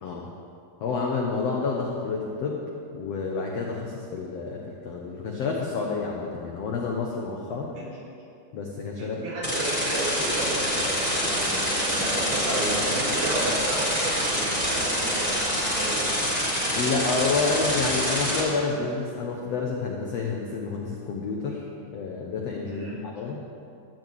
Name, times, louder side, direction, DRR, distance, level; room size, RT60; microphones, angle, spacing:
voice 1, 0.8-2.6 2.9-7.7 8.5-9.2 16.8-23.5, left 4 dB, 75° left, -1 dB, 1.5 m, -29 dB
voice 2, 9.0-16.2 22.7-23.0, right 1 dB, 60° right, -7 dB, 4.8 m, -32 dB
sound 1, 9.4-18.4, equal, 5° left, 3.2 m, -26 dB
14.0 x 6.2 x 8.7 m, 2.5 s
omnidirectional pair, 4.3 m